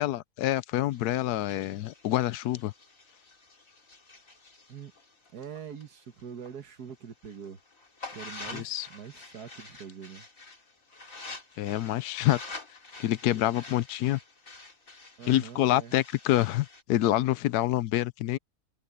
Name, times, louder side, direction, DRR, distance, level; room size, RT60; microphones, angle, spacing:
voice 1, 0.0-2.7 8.5-8.9 11.6-12.4 13.0-14.2 15.3-18.4, left 14 dB, 85° left, 1.2 m, -27 dB
sound 1, 0.9-6.5 6.9-16.8, left 3 dB, 60° left, 3.6 m, -47 dB
voice 2, 5.3-7.6 8.1-10.3 15.2-16.0, right 7 dB, 85° right, 2.0 m, -43 dB
omnidirectional pair, 1.6 m